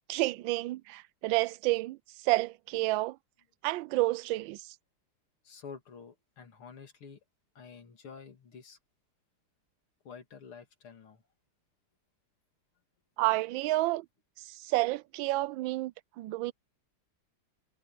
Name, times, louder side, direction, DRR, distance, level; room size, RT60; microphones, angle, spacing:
voice 1, 0.1-2.0 2.2-3.2 3.6-4.6 13.2-14.0 14.5-16.5, right 19 dB, 75° right, 1.3 m, -30 dB
voice 2, 5.4-7.2 7.5-8.8 10.0-11.2, left 6 dB, 80° left, 3.4 m, -49 dB
omnidirectional pair, 2.3 m